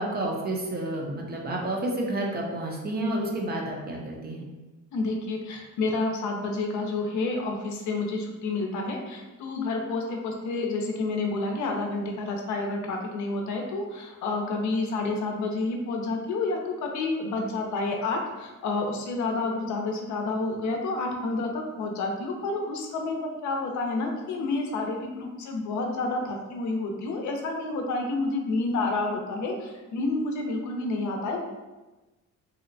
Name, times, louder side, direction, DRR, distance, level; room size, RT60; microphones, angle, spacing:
voice 1, 0.0-4.4, right 1 dB, 30° right, -1 dB, 0.6 m, -30 dB
voice 2, 4.9-31.4, left 3 dB, 70° left, 2 dB, 0.5 m, -29 dB
2.7 x 2.1 x 2.5 m, 1.1 s
cardioid pair, 90°, 30 cm